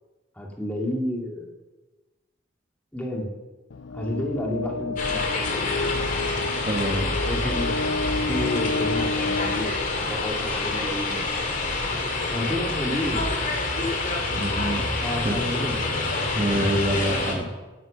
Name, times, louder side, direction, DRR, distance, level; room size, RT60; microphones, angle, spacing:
voice 1, 0.4-1.5 2.9-3.3 3.9-5.3 7.2-7.8 8.3-11.2 12.3-13.3 15.0-15.8 17.1-17.5, left 1 dB, 10° left, -1 dB, 2.4 m, -30 dB
sound 1, 3.7-10.6, left 3 dB, 75° left, 0.6 m, -31 dB
sound 2, 5.0-17.3, left 3 dB, 45° left, 2.8 m, -27 dB
voice 2, 6.7-7.1 14.3-14.9 15.2-15.5 16.3-17.4, right 1 dB, 30° right, 2 dB, 1.2 m, -26 dB
16.5 x 10.5 x 5.5 m, 1.2 s
head